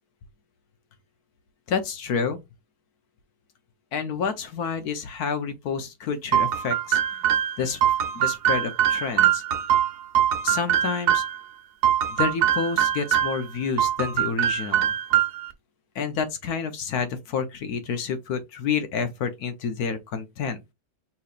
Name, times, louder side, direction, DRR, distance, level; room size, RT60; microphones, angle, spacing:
voice 1, 1.7-2.4 3.9-7.2 7.6-7.8 8.1-9.4 10.4-11.2 12.2-14.9 15.9-20.6, left 6 dB, 75° left, 1.3 m, -29 dB
sound 1, 6.3-11.4 11.8-13.4 13.8-15.5, right 10 dB, 90° right, 1.4 m, -23 dB
5.7 x 3.1 x 2.4 m
omnidirectional pair, 1.7 m